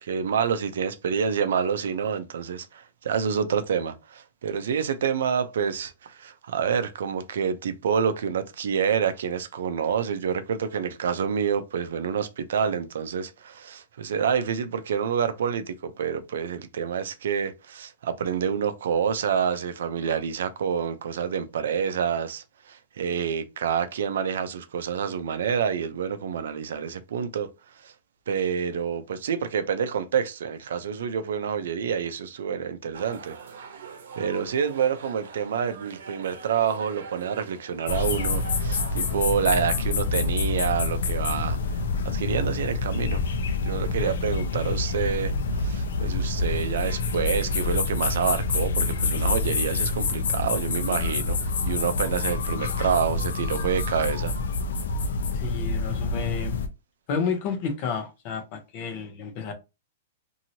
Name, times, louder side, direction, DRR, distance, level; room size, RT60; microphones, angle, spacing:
voice 1, 0.0-27.5 27.8-27.9 28.3-33.4 34.2-41.6 42.0-43.2 43.6-54.3, right 7 dB, 70° right, 0.5 m, -28 dB
sound 1, 32.9-39.3, right 5 dB, 90° right, 0.8 m, -43 dB
sound 2, 37.9-56.7, left 4 dB, 90° left, 0.7 m, -27 dB
voice 2, 55.3-56.6 57.1-59.5, left 6 dB, 30° left, 0.7 m, -31 dB
2.9 x 2.7 x 2.7 m
supercardioid pair, 175°, 0 cm